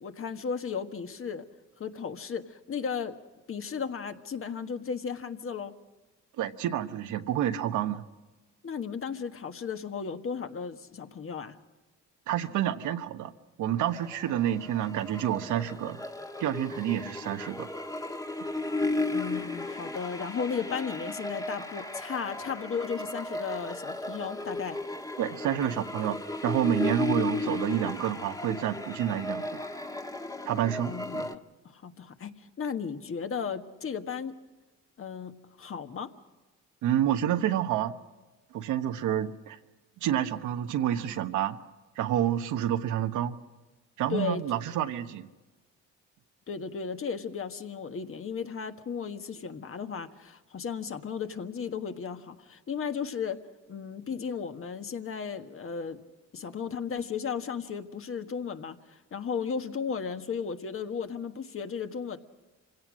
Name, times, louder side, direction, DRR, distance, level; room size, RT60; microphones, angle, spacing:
voice 1, 0.0-1.4 1.8-3.2 3.5-5.7 8.6-11.6 19.1-24.8 30.8-31.4 31.6-34.3 35.0-35.3 35.6-36.1 44.1-44.4 46.5-53.4 53.7-56.0 56.3-62.2, left 6 dB, 45° left, 7 dB, 1.5 m, -35 dB
voice 2, 6.4-8.0 12.3-13.3 13.6-16.0 16.4-17.7 25.2-26.2 26.4-29.4 30.4-31.3 36.8-37.9 38.5-39.6 40.0-41.6 42.0-43.4 44.0-45.3, right 11 dB, 90° right, 8 dB, 1.2 m, -29 dB
always falling, 13.9-31.3, left 2 dB, 10° left, 1.3 m, -35 dB
25.5 x 17.0 x 6.3 m, 1.2 s
cardioid pair, 90°, 30 cm